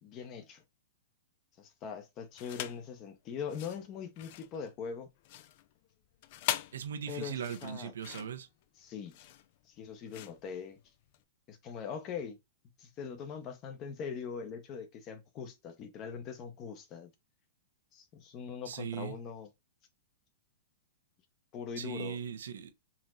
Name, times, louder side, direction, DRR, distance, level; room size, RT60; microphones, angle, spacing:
voice 1, 0.0-0.6 1.6-5.1 7.1-7.9 8.8-9.3 9.7-10.8 11.5-12.4 12.8-17.1 17.9-19.5 21.5-22.2, left 6 dB, 30° left, 0.8 m, -42 dB
sound 1, 2.3-2.9 3.4-11.2, left 13 dB, 45° left, 0.3 m, -42 dB
voice 2, 6.7-8.5 18.6-19.2 21.8-22.7, right 8 dB, 85° right, 0.7 m, -39 dB
4.0 x 3.0 x 2.5 m
hypercardioid pair, 155°, 0 cm